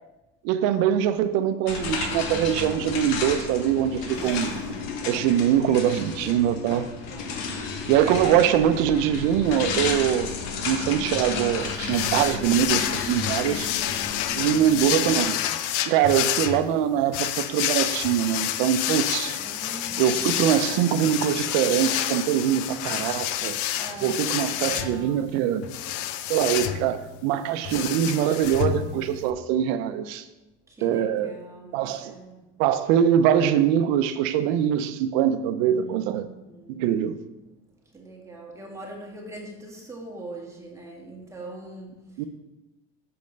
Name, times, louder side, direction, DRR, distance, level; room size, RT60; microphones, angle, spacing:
voice 1, 0.4-4.5 5.0-6.9 7.9-10.3 10.6-13.7 14.4-15.4 15.8-19.4 20.0-23.6 24.0-25.7 26.3-30.2 30.8-31.3 31.7-32.1 32.6-36.3 36.7-37.1 42.2-42.3, right 10 dB, 85° right, 10 dB, 0.7 m, -23 dB
sound 1, 1.7-15.2, left 5 dB, 85° left, 1.2 m, -32 dB
voice 2, 4.1-5.2 7.1-7.6 19.4-20.5 23.8-25.2 30.7-32.4 35.6-36.1 36.5-36.9 37.9-41.9, right 2 dB, 10° right, -2 dB, 1.9 m, -42 dB
sound 2, 11.9-29.3, left 11 dB, 70° left, 0.6 m, -29 dB
6.9 x 5.3 x 5.2 m, 1.0 s
cardioid pair, 115°, 30 cm